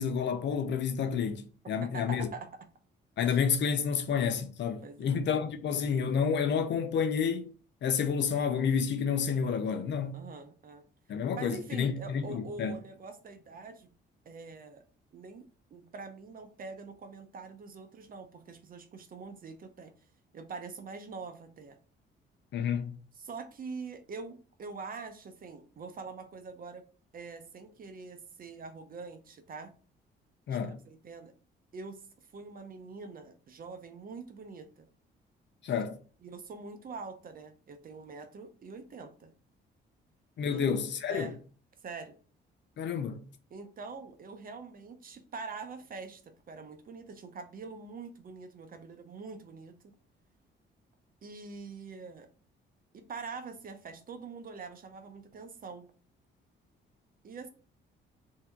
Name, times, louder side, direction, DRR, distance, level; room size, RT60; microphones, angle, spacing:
voice 1, 0.0-2.3 3.2-7.5 7.8-10.2 11.1-12.7 22.5-22.9 30.5-30.7 35.6-36.0 40.4-41.3 42.8-43.2, left 6 dB, 65° left, 0.7 m, -30 dB
voice 2, 1.6-2.7 3.3-3.4 4.8-5.1 10.1-10.8 11.3-13.9 14.3-14.8 15.1-19.9 20.3-21.8 23.1-26.8 27.1-29.7 30.5-31.3 31.7-34.8 36.2-39.3 40.5-40.7 41.1-41.4 41.8-42.1 43.5-49.9 51.2-52.3 52.9-55.9 57.2-57.5, right 4 dB, 45° right, 0.8 m, -44 dB
3.4 x 2.8 x 4.4 m
cardioid pair, 90°, 20 cm